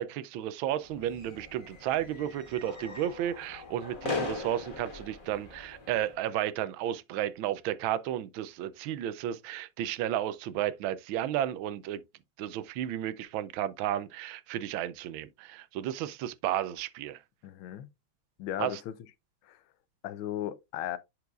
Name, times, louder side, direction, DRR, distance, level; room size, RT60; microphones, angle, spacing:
voice 1, 0.0-12.0 12.4-17.2 18.6-18.8, right 11 dB, 80° right, 1.4 m, -33 dB
sound 1, 0.8-6.2, left 3 dB, 25° left, 1.5 m, -40 dB
voice 2, 17.4-17.9 18.4-18.9 19.4-19.6 20.0-21.0, left 12 dB, 90° left, 1.5 m, -36 dB
10.0 x 4.7 x 2.4 m
omnidirectional pair, 2.2 m